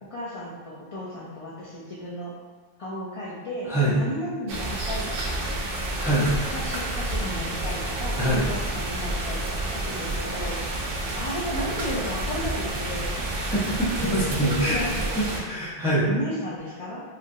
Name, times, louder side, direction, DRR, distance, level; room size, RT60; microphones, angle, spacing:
voice 1, 0.1-2.3 2.8-5.8 6.5-10.8 11.2-13.2 14.0-15.4 16.1-17.0, left 1 dB, 50° left, -7 dB, 0.4 m, -34 dB
sound 1, 4.5-15.4, right 1 dB, 65° right, 0.7 m, -29 dB
voice 2, 6.0-6.3 8.2-8.4 13.4-16.1, right 1 dB, 5° right, -10 dB, 0.7 m, -25 dB
3.0 x 2.5 x 2.6 m, 1.5 s
omnidirectional pair, 1.1 m